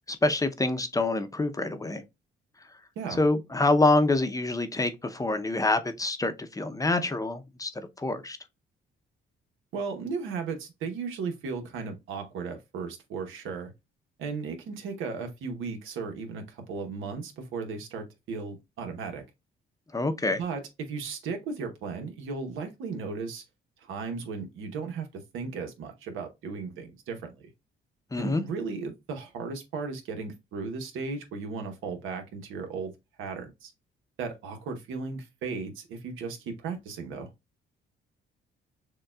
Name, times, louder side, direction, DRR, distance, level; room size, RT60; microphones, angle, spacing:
voice 1, 0.1-2.0 3.1-7.7 8.0-8.4 19.9-20.4 28.1-28.4, left 2 dB, 15° left, 0.7 m, -26 dB
voice 2, 9.7-13.7 14.2-19.2 20.4-23.4 23.8-25.1 25.3-27.5 28.2-32.9 33.2-33.7 34.2-37.3, right 4 dB, 85° right, 1.0 m, -36 dB
6.5 x 2.3 x 2.3 m
cardioid pair, 90°, 20 cm